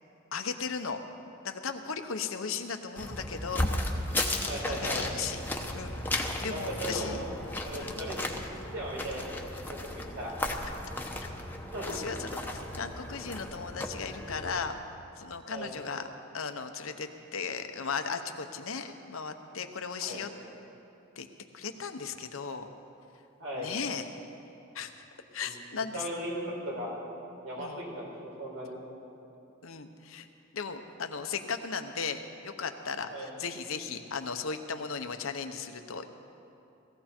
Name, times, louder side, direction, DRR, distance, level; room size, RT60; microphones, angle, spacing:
voice 1, 0.3-1.0 1.4-3.6 4.7-5.4 5.7-7.2 7.8-8.0 11.9-14.8 15.2-16.1 16.3-20.3 21.2-21.3 21.5-22.7 23.6-24.0 24.7-24.9 25.3-26.0 27.6-27.8 29.6-30.3 30.5-36.1, left 5 dB, 75° left, 7 dB, 0.9 m, -36 dB
sound 1, 3.0-14.7, left 1 dB, 10° left, 0.9 m, -35 dB
voice 2, 4.4-5.1 6.4-7.3 7.6-8.3 8.7-10.3 11.7-12.0 15.5-15.7 20.0-20.2 23.4-23.7 25.4-25.5 25.9-26.9 27.4-28.8 33.1-33.3, equal, 80° right, -3 dB, 4.5 m, -37 dB
18.0 x 15.5 x 4.4 m, 2.8 s
head